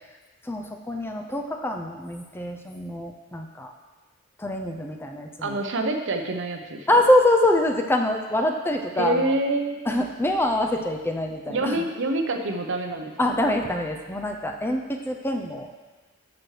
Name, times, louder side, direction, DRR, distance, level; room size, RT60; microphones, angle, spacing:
voice 1, 0.4-3.7 4.4-5.6 6.9-9.3 9.9-11.8 13.2-15.7, left 1 dB, 10° left, 2 dB, 0.5 m, -24 dB
voice 2, 5.4-6.9 9.0-10.1 11.5-13.4, right 2 dB, 60° right, 4 dB, 0.8 m, -27 dB
13.0 x 6.1 x 3.3 m, 1.3 s
head